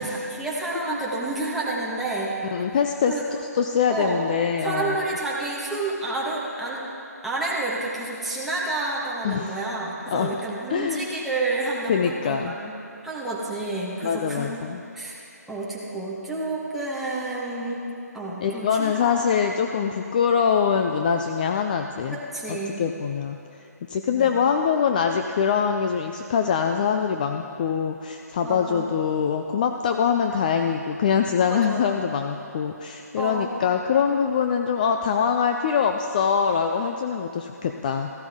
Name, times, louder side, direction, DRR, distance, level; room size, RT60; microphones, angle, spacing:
voice 1, 0.0-2.3 3.1-3.2 3.9-4.2 4.6-6.8 7.2-12.7 13.0-14.6 14.9-15.2 15.5-17.8 18.1-19.1 22.1-22.8 24.1-24.3 28.4-28.9 31.5-31.8 33.1-33.5, right 2 dB, ahead, -7 dB, 1.3 m, -29 dB
voice 2, 2.5-5.1 9.2-9.5 10.1-10.3 10.7-11.1 11.9-12.5 14.0-14.8 18.4-22.2 22.5-23.4 23.9-38.1, left 7 dB, 30° left, 5 dB, 0.4 m, -24 dB
14.5 x 13.0 x 3.6 m, 2.6 s
hypercardioid pair, 160°, 9 cm